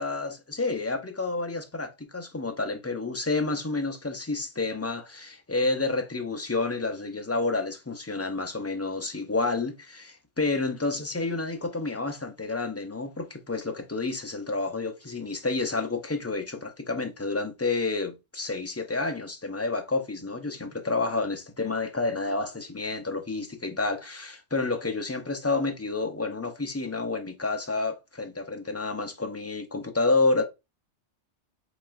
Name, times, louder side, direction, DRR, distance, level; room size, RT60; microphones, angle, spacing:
voice 1, 0.0-30.4, left 3 dB, 20° left, 0.4 m, -29 dB
4.9 x 3.6 x 2.5 m
omnidirectional pair, 1.2 m